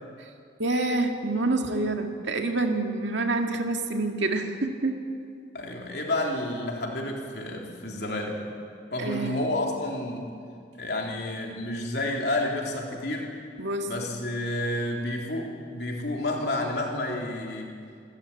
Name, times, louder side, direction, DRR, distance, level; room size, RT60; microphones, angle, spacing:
voice 1, 0.6-5.0 9.0-9.4 13.6-13.9, right 2 dB, 80° right, 4 dB, 2.1 m, -27 dB
voice 2, 5.5-8.4 8.9-10.3 10.8-13.3 13.8-17.7, left 1 dB, 60° left, 0 dB, 3.7 m, -30 dB
27.5 x 14.0 x 8.8 m, 2.3 s
head